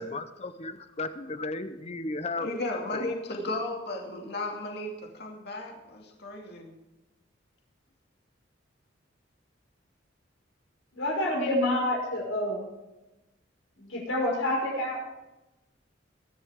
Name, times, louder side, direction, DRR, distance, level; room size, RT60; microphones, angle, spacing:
voice 1, 0.0-2.5 2.9-3.1 3.4-3.6, left 3 dB, 35° left, 10 dB, 0.9 m, -35 dB
voice 2, 2.4-6.7, left 2 dB, 55° left, 0 dB, 2.4 m, -35 dB
voice 3, 10.9-12.7 13.8-15.0, left 1 dB, 90° left, -1 dB, 5.3 m, -28 dB
22.0 x 11.5 x 3.7 m, 1.0 s
head